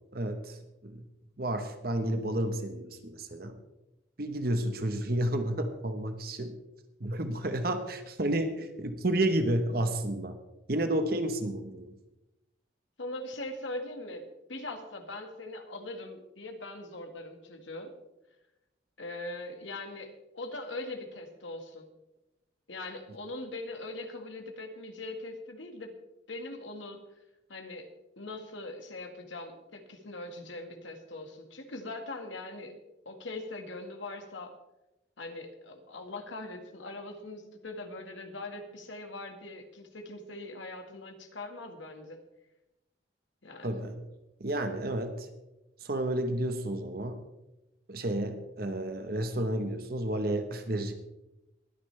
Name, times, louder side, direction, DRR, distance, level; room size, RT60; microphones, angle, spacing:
voice 1, 0.1-0.6 0.8-1.0 1.4-3.6 4.2-6.5 7.0-10.4 10.7-12.0 43.6-44.0 44.4-45.3 45.8-47.2 47.9-50.9, right 1 dB, 50° right, 7 dB, 1.1 m, -31 dB
voice 2, 13.0-17.9 19.0-21.9 22.7-25.9 26.3-27.0 27.5-27.9 28.2-32.7 33.1-34.5 35.2-42.2 43.4-43.7, left 2 dB, 80° left, 5 dB, 1.7 m, -41 dB
21.0 x 10.0 x 3.3 m, 0.96 s
head